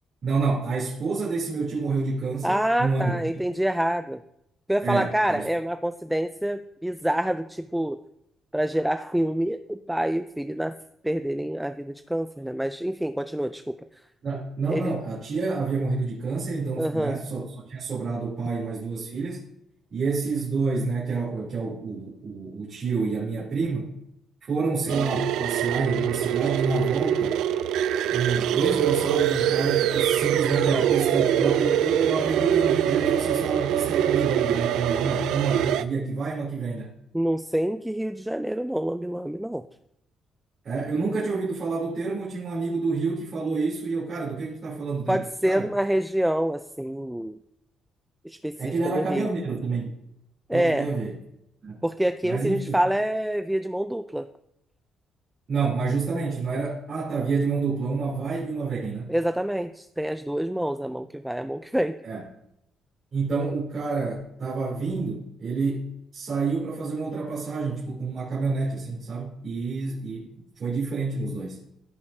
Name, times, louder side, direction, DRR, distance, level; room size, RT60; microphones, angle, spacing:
voice 1, 0.2-3.1 4.8-5.5 14.2-19.4 19.9-23.9 24.5-27.4 28.1-36.9 40.6-45.7 48.6-49.9 50.5-51.1 51.6-51.8 52.2-52.7 55.5-59.1 62.0-62.2 63.1-71.6, right 4 dB, 55° right, -7 dB, 3.1 m, -28 dB
voice 2, 2.4-4.2 4.7-8.0 8.5-10.7 11.0-13.8 14.7-14.9 16.8-17.2 37.1-39.6 45.1-47.4 48.2-48.6 48.9-49.3 50.5-50.9 51.8-54.3 59.1-62.0, right 1 dB, 5° right, 9 dB, 0.3 m, -26 dB
sound 1, 24.9-35.8, right 10 dB, 90° right, 0.4 m, -24 dB
15.5 x 5.2 x 2.7 m, 0.80 s
cardioid pair, 90°, 0 cm